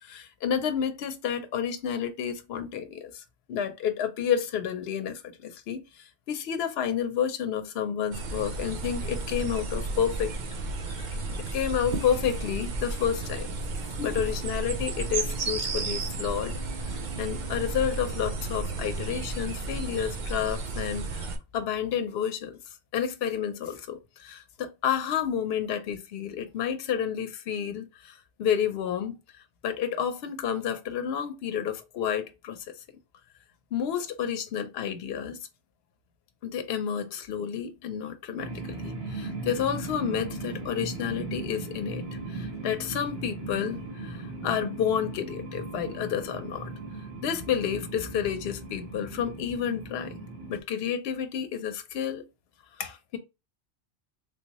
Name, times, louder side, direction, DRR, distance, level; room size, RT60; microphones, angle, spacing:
voice 1, 0.0-3.2 3.5-10.4 10.8-13.5 14.0-16.5 17.2-22.6 22.9-29.2 29.6-32.6 33.7-35.4 36.4-46.7 47.2-50.2 50.5-52.2 52.8-53.2, left 8 dB, 70° left, 0.8 m, -30 dB
sound 1, 8.1-21.4, right 3 dB, 50° right, 0.6 m, -33 dB
sound 2, 38.4-50.6, right 2 dB, 70° right, 1.2 m, -38 dB
3.4 x 2.7 x 2.9 m
omnidirectional pair, 1.1 m